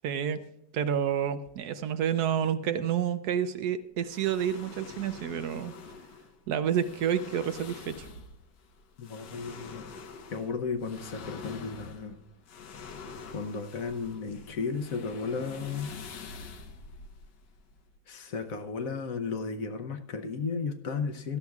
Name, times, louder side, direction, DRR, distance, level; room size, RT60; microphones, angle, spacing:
voice 1, 0.0-0.4 0.7-5.7 6.5-8.1, right 8 dB, 70° right, 11 dB, 1.1 m, -29 dB
sound 1, 4.1-18.0, left 5 dB, 90° left, 1.7 m, -46 dB
voice 2, 9.0-9.9 10.3-12.2 13.3-15.9 18.1-21.4, left 5 dB, 60° left, 7 dB, 1.2 m, -34 dB
17.0 x 13.0 x 2.4 m, 0.84 s
omnidirectional pair, 1.8 m